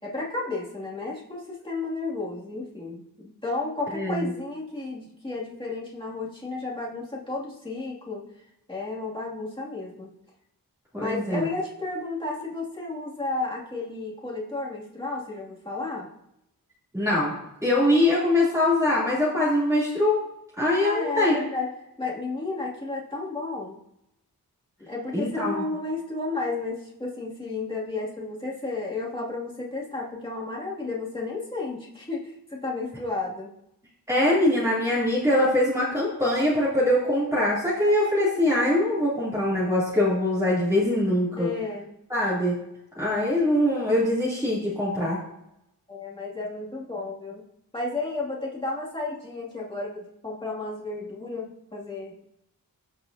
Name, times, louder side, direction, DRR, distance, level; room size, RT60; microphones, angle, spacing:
voice 1, 0.0-8.2 8.7-10.1 10.9-16.1 20.8-21.7 22.0-23.8 24.8-33.5 41.3-41.9 45.9-47.4 47.7-52.2, left 3 dB, 15° left, -6 dB, 2.5 m, -32 dB
voice 2, 3.9-4.3 10.9-11.5 16.9-17.3 17.6-20.2 20.6-21.5 25.1-25.7 34.1-41.5 42.1-42.5 43.0-45.2, left 1 dB, 10° right, -9 dB, 3.0 m, -23 dB
15.5 x 5.4 x 2.8 m, 0.81 s
wide cardioid pair, 95°, 36 cm